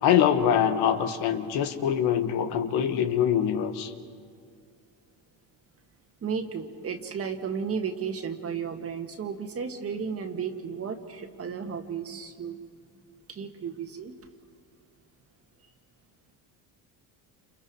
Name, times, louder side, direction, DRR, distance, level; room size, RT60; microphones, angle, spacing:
voice 1, 0.0-3.9, left 9 dB, 70° left, 8 dB, 1.7 m, -24 dB
voice 2, 6.2-12.6 13.3-14.1 15.6-15.7, right 6 dB, 35° right, 5 dB, 1.8 m, -34 dB
29.5 x 29.0 x 4.8 m, 2.2 s
cardioid pair, 130°, 40 cm